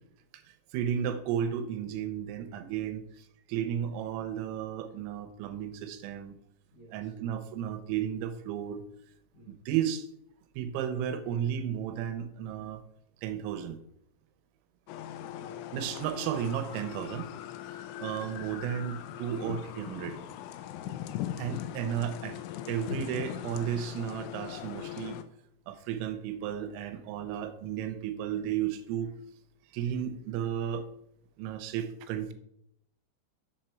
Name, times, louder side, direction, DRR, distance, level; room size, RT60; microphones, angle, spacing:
voice 1, 0.3-6.4 6.9-8.8 9.5-10.1 10.6-12.8 13.2-13.8 15.7-17.3 18.0-20.2 21.4-22.4 22.7-25.2 25.7-29.1 29.7-30.9 31.4-32.3, right 9 dB, 90° right, 3.6 m, -33 dB
voice 2, 6.7-7.1 9.3-9.6 15.2-15.7 20.8-21.2, right 1 dB, 40° left, 4.4 m, -54 dB
sound 1, 14.9-25.2, left 12 dB, 80° left, 3.1 m, -40 dB
7.7 x 7.6 x 4.4 m
omnidirectional pair, 5.8 m